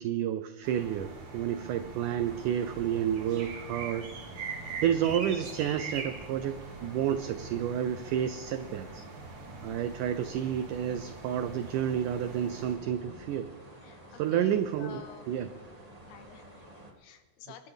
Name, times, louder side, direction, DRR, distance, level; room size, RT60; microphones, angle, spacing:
voice 1, 0.0-4.1 4.8-9.0 9.6-13.5 14.2-15.5, right 9 dB, 90° right, 11 dB, 1.8 m, -30 dB
sound 1, 0.6-12.8, right 4 dB, 60° right, 3.8 m, -43 dB
voice 2, 1.6-2.0 5.0-5.1 13.8-15.3 16.1-17.7, left 8 dB, 80° left, 8 dB, 3.2 m, -51 dB
sound 2, 2.2-16.9, right 1 dB, 20° right, 1.1 m, -51 dB
25.0 x 12.0 x 3.5 m, 1.4 s
omnidirectional pair, 4.4 m